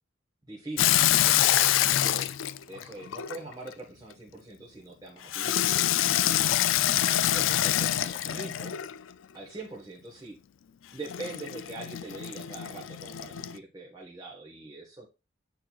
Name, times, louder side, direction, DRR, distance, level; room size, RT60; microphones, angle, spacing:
voice 1, 0.4-2.4 2.7-5.8 6.2-6.5 7.3-8.8 9.3-10.4 10.9-15.1, right 2 dB, 20° right, -4 dB, 1.3 m, -43 dB
Water tap faucet / Sink (filling or washing), 0.8-3.7 5.3-9.0 11.1-13.6, left 12 dB, 75° left, 0.4 m, -26 dB
8.9 x 4.5 x 2.4 m, 0.28 s
head